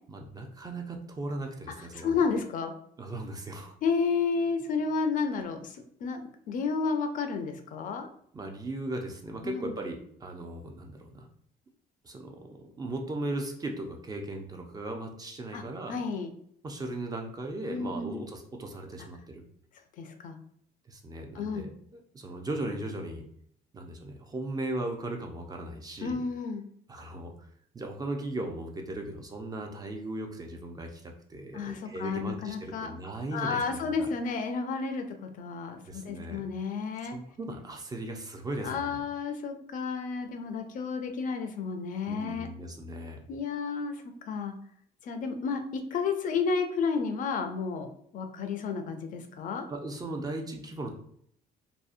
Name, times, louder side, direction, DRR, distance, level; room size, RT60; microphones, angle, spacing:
voice 1, 0.1-2.2 3.0-3.8 8.3-11.3 12.0-16.0 16.6-19.4 20.9-23.3 23.7-26.2 26.9-27.3 27.7-34.1 35.8-36.4 37.1-39.0 42.1-43.2 49.7-50.9, right 2 dB, 20° right, 3 dB, 0.4 m, -37 dB
voice 2, 1.9-2.7 3.8-6.2 6.5-8.1 9.4-9.7 15.5-15.6 15.9-16.3 17.7-18.2 20.0-20.4 21.3-21.7 26.0-26.6 31.5-32.9 33.3-37.2 38.6-42.5 43.3-44.6 45.0-47.9 48.1-49.6, left 5 dB, 55° left, 7 dB, 0.4 m, -31 dB
2.6 x 2.0 x 2.4 m, 0.66 s
cardioid pair, 110°, 17 cm